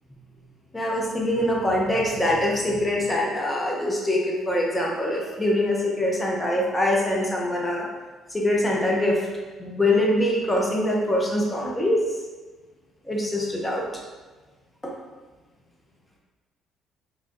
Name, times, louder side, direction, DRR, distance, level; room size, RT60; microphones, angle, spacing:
voice 1, 0.7-7.9 8.3-9.3 9.6-12.0 13.0-13.9 14.8-14.9, left 1 dB, 15° left, -2 dB, 0.8 m, -24 dB
3.2 x 2.5 x 3.7 m, 1.3 s
supercardioid pair, 75°, 0 cm